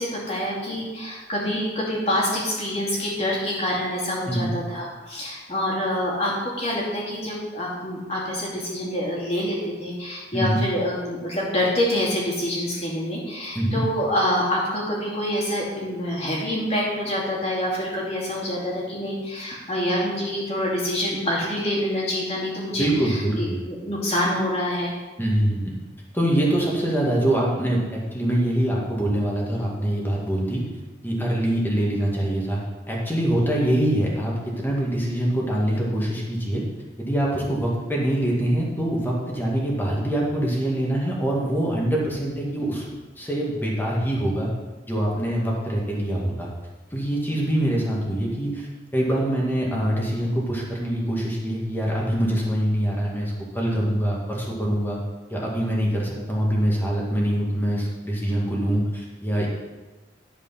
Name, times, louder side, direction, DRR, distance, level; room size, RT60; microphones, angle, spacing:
voice 1, 0.0-24.9, left 1 dB, 35° left, -4 dB, 2.6 m, -26 dB
voice 2, 22.7-23.6 25.2-25.7 26.1-30.7 31.0-32.6 32.9-36.6 37.0-42.9 43.2-44.5 44.9-46.5 46.9-48.7 48.9-55.0 55.3-59.5, right 1 dB, 10° left, -3 dB, 2.0 m, -24 dB
11.5 x 5.0 x 5.7 m, 1.2 s
head